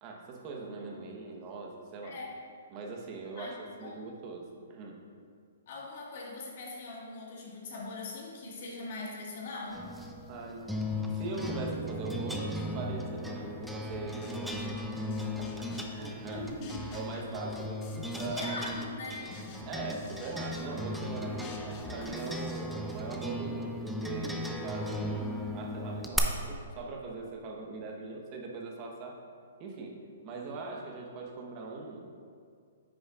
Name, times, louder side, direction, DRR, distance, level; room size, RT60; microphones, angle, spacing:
voice 1, 0.0-2.2 2.7-5.0 10.3-10.7 11.1-14.9 15.4-16.5 16.9-18.5 19.7-29.2 29.6-32.1, right 3 dB, 30° right, 1 dB, 1.0 m, -41 dB
voice 2, 0.7-1.1 2.0-2.3 3.4-3.5 3.8-4.0 5.7-9.8 16.2-17.0 18.3-19.3, left 3 dB, 55° left, -2 dB, 1.6 m, -41 dB
sound 1, 9.7-26.2, left 1 dB, ahead, 0.4 m, -37 dB
sound 2, 13.9-16.0 16.3-18.4 18.7-23.1, left 4 dB, 30° left, 0.8 m, -50 dB
9.3 x 6.2 x 2.4 m, 2.2 s
hypercardioid pair, 150°, 0 cm